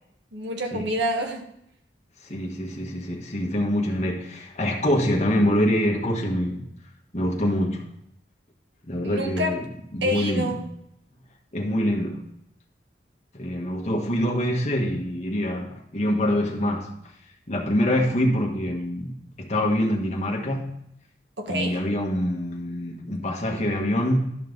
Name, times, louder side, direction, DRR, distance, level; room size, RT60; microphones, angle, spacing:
voice 1, 0.3-1.4 9.0-9.6 10.0-10.6 21.4-21.8, equal, 85° right, 3 dB, 1.4 m, -27 dB
voice 2, 2.2-6.6 7.1-7.9 8.9-9.7 9.9-10.5 11.5-12.2 13.3-16.9 17.5-19.1 19.4-20.8 21.5-24.3, equal, 40° left, 0 dB, 1.5 m, -25 dB
12.0 x 5.4 x 4.0 m, 0.76 s
head